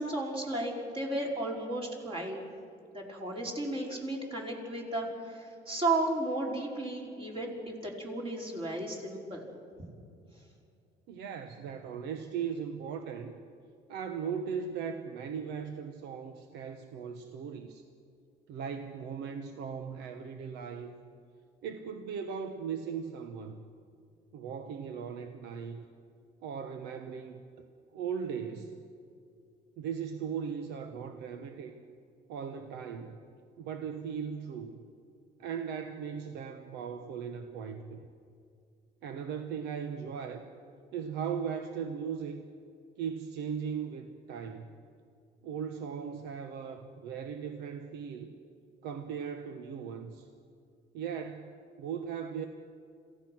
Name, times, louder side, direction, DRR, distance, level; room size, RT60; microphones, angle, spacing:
voice 1, 0.0-2.4 2.9-9.5, right 2 dB, 30° right, -2 dB, 4.9 m, -34 dB
voice 2, 11.1-13.3 13.9-17.8 18.5-21.0 21.6-23.6 24.3-25.8 26.4-27.4 27.9-28.8 29.8-31.8 32.3-33.2 33.6-34.8 35.4-38.1 39.0-40.4 40.9-42.4 43.0-44.7 45.4-48.3 48.8-50.3 50.9-52.5, right 7 dB, 85° right, 6 dB, 1.2 m, -38 dB
26.5 x 16.0 x 6.2 m, 2.4 s
cardioid pair, 110°, 17 cm